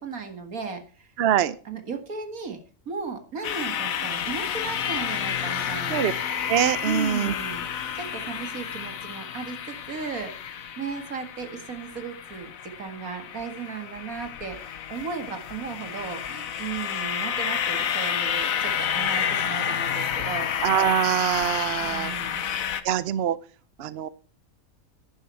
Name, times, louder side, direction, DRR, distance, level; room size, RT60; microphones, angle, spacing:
voice 1, 0.0-1.1 1.7-6.1 6.8-20.5 21.8-22.4, right 5 dB, 85° right, 6 dB, 2.3 m, -36 dB
voice 2, 1.2-1.5 5.9-6.1 6.5-7.3 20.6-22.1 22.8-23.4 23.8-24.1, right 10 dB, 60° right, 16 dB, 0.8 m, -23 dB
sound 1, 3.4-22.8, left 8 dB, 75° left, 1.3 m, -30 dB
10.5 x 10.5 x 4.4 m, 0.39 s
omnidirectional pair, 1.5 m